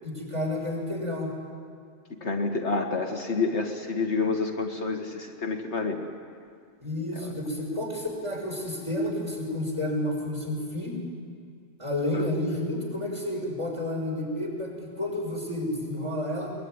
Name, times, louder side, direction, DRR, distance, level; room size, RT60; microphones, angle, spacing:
voice 1, 0.0-1.3 6.8-11.0 11.8-16.5, left 1 dB, 25° right, -1 dB, 6.4 m, -30 dB
voice 2, 2.2-6.1 7.1-7.3 12.1-12.2, left 4 dB, 65° left, 3 dB, 1.9 m, -28 dB
22.0 x 21.0 x 9.7 m, 2.1 s
omnidirectional pair, 1.3 m